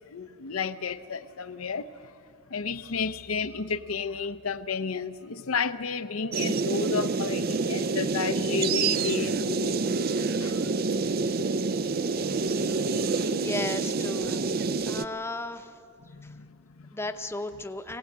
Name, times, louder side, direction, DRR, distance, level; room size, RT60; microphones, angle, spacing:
voice 1, 0.1-1.9 2.5-9.9 10.4-10.7 12.3-12.4 12.7-13.4 14.2-14.4 16.1-16.9, left 5 dB, 75° left, 0.7 m, -32 dB
sound 1, 6.3-15.0, right 4 dB, 45° right, 0.5 m, -27 dB
voice 2, 13.4-14.4 14.8-15.7 16.9-18.0, left 2 dB, 10° left, 0.8 m, -34 dB
23.0 x 18.5 x 8.6 m
head